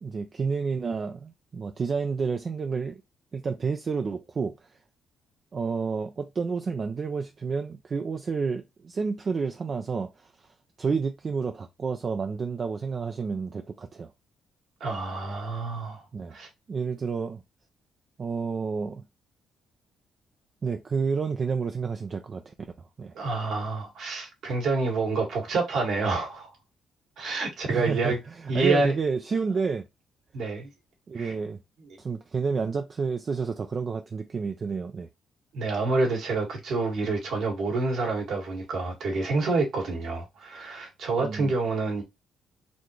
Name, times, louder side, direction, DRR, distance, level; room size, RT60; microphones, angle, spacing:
voice 1, 0.0-3.0 3.3-4.5 5.5-10.1 10.8-14.1 16.1-16.4 16.7-17.4 18.2-19.0 20.6-22.5 23.0-23.1 27.7-29.8 31.1-31.6 32.0-35.1 41.2-41.5, right 5 dB, 40° right, 0.5 m, -30 dB
voice 2, 14.8-16.0 16.3-16.5 23.2-26.5 27.2-28.2 28.5-28.9 30.3-30.7 31.2-31.3 31.8-31.9 35.5-42.0, right 3 dB, 70° right, 2.0 m, -28 dB
4.1 x 2.9 x 3.2 m
cardioid pair, 90°, 0 cm